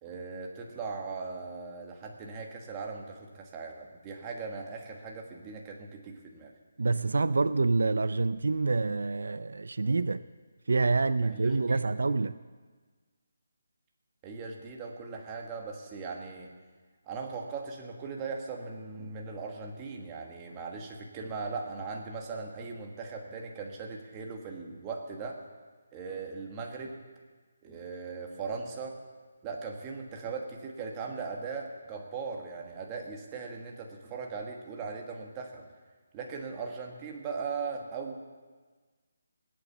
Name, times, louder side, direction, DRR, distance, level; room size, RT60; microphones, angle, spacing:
voice 1, 0.0-6.5 11.2-11.8 14.2-16.5 17.1-25.4 25.9-27.0 27.6-29.0 29.4-35.7 36.1-38.2, right 4 dB, 15° right, 1 dB, 1.3 m, -39 dB
voice 2, 6.8-10.2 10.7-12.3, right 3 dB, 80° right, 15 dB, 0.4 m, -27 dB
19.0 x 8.5 x 7.2 m, 1.4 s
hypercardioid pair, 175°, 0 cm